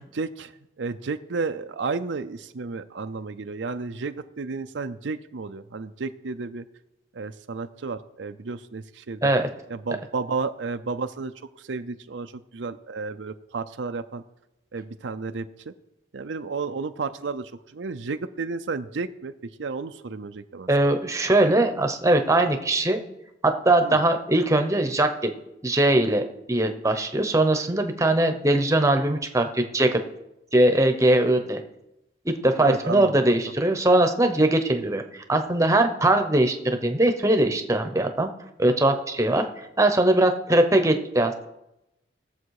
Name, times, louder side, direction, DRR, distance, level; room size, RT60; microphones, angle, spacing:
voice 1, 0.1-0.5 0.8-6.6 7.1-9.3 9.7-11.3 11.6-14.2 14.7-15.7 16.1-19.3 19.6-20.7 23.8-24.0 32.6-33.4, right 4 dB, 75° right, 9 dB, 0.6 m, -32 dB
voice 2, 20.7-23.0 23.4-25.3 25.6-30.0 30.5-31.6 32.2-38.3 38.6-41.3, right 1 dB, 15° right, 6 dB, 0.9 m, -21 dB
18.5 x 7.1 x 4.8 m, 0.91 s
head